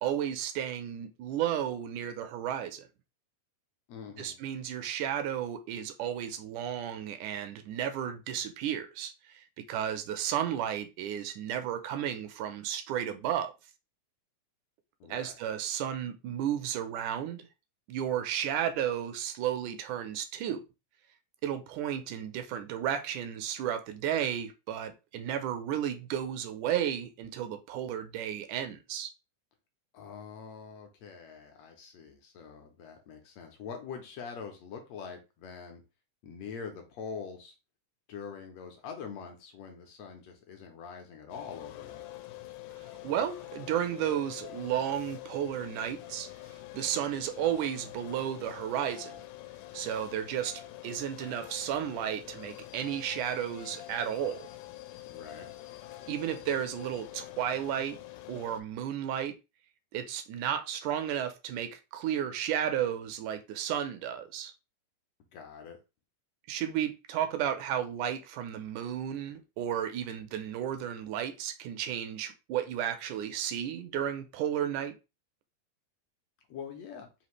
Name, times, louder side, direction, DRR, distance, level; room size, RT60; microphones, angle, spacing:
voice 1, 0.0-2.9 4.2-13.5 15.1-17.5 17.9-20.6 21.4-29.1 43.0-46.3 46.7-49.1 49.7-54.5 56.1-58.0 58.3-59.4 59.9-64.5 66.5-74.9, right 10 dB, 85° right, 2.1 m, -33 dB
voice 2, 3.9-4.4 15.0-15.4 29.9-35.8 36.2-37.5 38.1-42.0 55.1-55.5 65.3-65.8 76.5-77.1, left 6 dB, 70° left, 1.7 m, -44 dB
sound 1, 41.3-58.6, left 15 dB, 90° left, 2.1 m, -46 dB
5.0 x 2.8 x 3.1 m
omnidirectional pair, 3.5 m